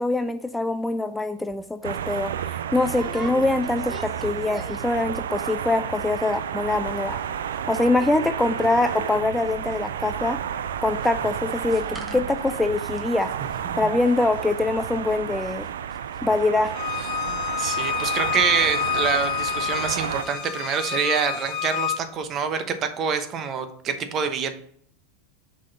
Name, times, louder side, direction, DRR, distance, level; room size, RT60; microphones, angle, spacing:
voice 1, 0.0-7.2 7.7-10.4 10.8-11.8 12.1-13.3 13.8-15.7 16.2-16.7 17.3-17.4, left 2 dB, 10° left, 9 dB, 0.4 m, -24 dB
sound 1, 1.5-1.6 2.0-2.2 2.8-5.0 5.3-5.7 5.9-6.0 6.2-6.6 6.9-9.2 9.4-18.5 18.8-19.2 19.5-19.6, equal, 10° right, 1.1 m, -44 dB
sound 2, 1.8-20.2, right 9 dB, 75° right, 0.3 m, -31 dB
Bowed string instrument, 16.7-22.0, left 10 dB, 50° left, 0.9 m, -28 dB
voice 2, 17.6-24.6, right 7 dB, 40° right, 9 dB, 0.9 m, -26 dB
6.2 x 4.1 x 4.1 m, 0.63 s
hypercardioid pair, 90°, 0 cm